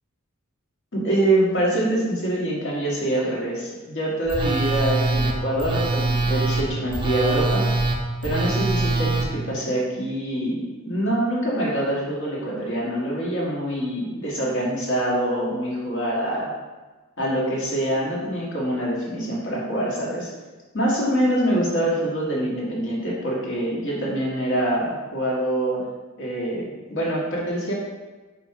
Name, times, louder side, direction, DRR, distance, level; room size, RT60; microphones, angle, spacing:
voice 1, 0.9-7.6 8.2-16.5 17.2-20.3 20.7-25.8 26.2-27.7, right 1 dB, 55° left, -5 dB, 1.9 m, -25 dB
Telephone, 4.3-9.3, right 3 dB, 20° right, 0.6 m, -23 dB
5.7 x 4.5 x 4.8 m, 1.3 s
head